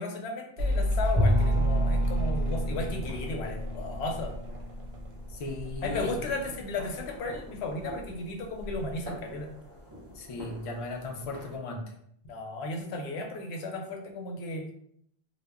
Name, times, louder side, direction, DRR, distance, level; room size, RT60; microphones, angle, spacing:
voice 1, 0.0-4.3 5.8-9.5 12.2-14.7, left 2 dB, 80° left, 3 dB, 0.8 m, -35 dB
Mechanical fan, 0.6-7.5 7.7-8.5, right 1 dB, 80° right, 0.8 m, -30 dB
Bowed string instrument, 1.2-6.0, left 2 dB, 15° left, 0.7 m, -32 dB
sound 1, 1.2-11.6, equal, 30° right, 0.4 m, -47 dB
voice 2, 5.3-6.4 10.1-11.8, left 3 dB, 55° left, 1 dB, 0.3 m, -37 dB
2.1 x 2.0 x 3.4 m, 0.68 s
omnidirectional pair, 1.1 m